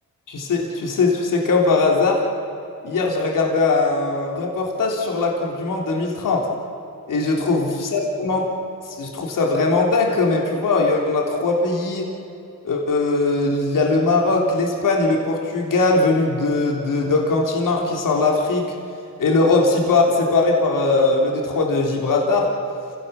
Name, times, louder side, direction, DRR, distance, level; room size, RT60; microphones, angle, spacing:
voice 1, 0.3-2.2 2.8-6.5 7.1-8.5 8.8-12.1 12.6-18.6 19.2-22.5, left 3 dB, 75° left, -1 dB, 3.7 m, -20 dB
28.5 x 17.0 x 7.1 m, 2.7 s
cardioid pair, 100°, 32 cm